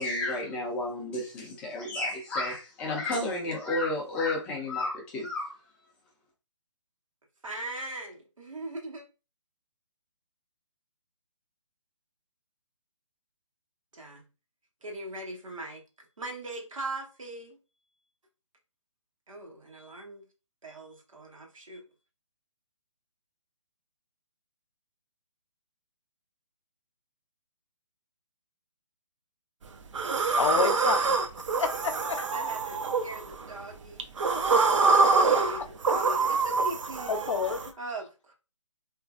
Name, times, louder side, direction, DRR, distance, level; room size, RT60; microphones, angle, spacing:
voice 1, 0.0-5.5, left 2 dB, 5° left, 0.3 m, -31 dB
voice 2, 7.4-9.0 13.9-14.3 14.8-17.6 19.3-20.2 20.6-21.8 32.3-35.0 35.3-37.4 37.8-38.3, right 1 dB, 85° right, 1.1 m, -40 dB
sound 1, 29.9-33.5 34.0-37.7, right 4 dB, 70° right, 0.5 m, -25 dB
voice 3, 30.1-31.2 31.6-32.3 35.3-35.9 36.3-36.4 37.1-37.8, left 6 dB, 65° left, 0.5 m, -31 dB
3.0 x 2.5 x 2.3 m
figure-of-eight pair, 145°, 17 cm